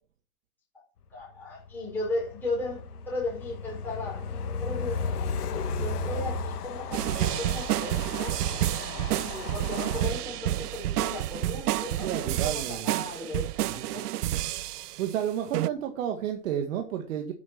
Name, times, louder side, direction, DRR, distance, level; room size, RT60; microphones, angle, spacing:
voice 1, 1.1-4.3 4.6-8.4 9.1-14.1, left 2 dB, 5° left, 4.6 m, -36 dB
Train, 1.6-10.0, left 4 dB, 80° left, 2.2 m, -35 dB
sound 1, 6.9-15.1 15.5-15.7, right 14 dB, 90° right, 0.6 m, -29 dB
voice 2, 8.9-9.3 12.0-13.0 13.6-14.0 15.0-17.3, right 9 dB, 55° right, 2.0 m, -32 dB
9.5 x 9.0 x 6.1 m
hypercardioid pair, 155°, 45 cm